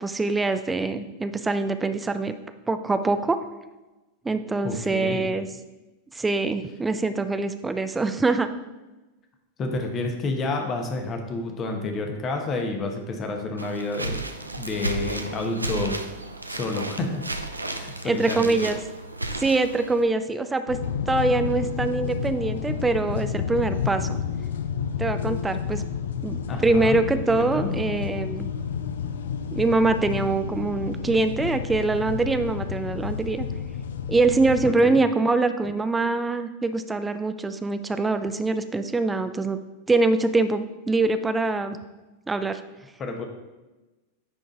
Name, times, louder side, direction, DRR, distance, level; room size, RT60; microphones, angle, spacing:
voice 1, 0.0-2.3 2.7-3.4 4.2-5.5 6.1-8.5 18.0-18.8 19.4-20.8 21.1-24.2 25.0-25.8 26.2-28.5 29.5-33.5 34.1-39.6 39.9-41.8 42.3-42.6, right 3 dB, 10° right, 10 dB, 0.4 m, -24 dB
voice 2, 4.6-5.3 9.6-14.2 14.6-16.0 16.5-17.2 17.7-18.5 26.5-27.0 27.3-27.7 34.6-35.0 43.0-43.2, left 3 dB, 30° left, 4 dB, 1.1 m, -29 dB
sound 1, 13.6-20.0, right 2 dB, 85° right, 0.5 m, -33 dB
sound 2, 20.7-34.7, left 7 dB, 65° left, 0.5 m, -30 dB
9.8 x 3.9 x 3.7 m, 1.1 s
figure-of-eight pair, 90°, 0 cm